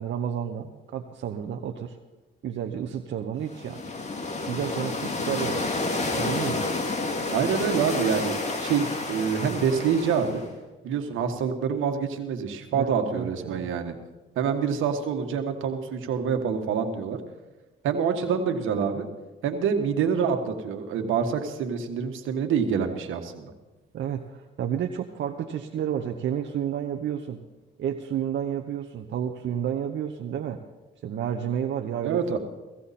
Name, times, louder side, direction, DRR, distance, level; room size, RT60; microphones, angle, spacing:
voice 1, 0.0-2.0 2.4-3.8 4.5-5.7 6.1-6.6 12.7-13.7 23.9-27.4 27.8-30.6 31.0-32.4, right 9 dB, 65° right, 4 dB, 0.9 m, -31 dB
sound 1, 3.5-10.5, left 3 dB, 35° left, 2.4 m, -30 dB
voice 2, 7.3-10.4 10.8-13.9 14.3-17.2 17.8-19.1 19.4-23.5 32.0-32.4, right 6 dB, 85° right, 6 dB, 1.6 m, -26 dB
17.0 x 15.5 x 4.3 m, 1.2 s
cardioid pair, 90°, 20 cm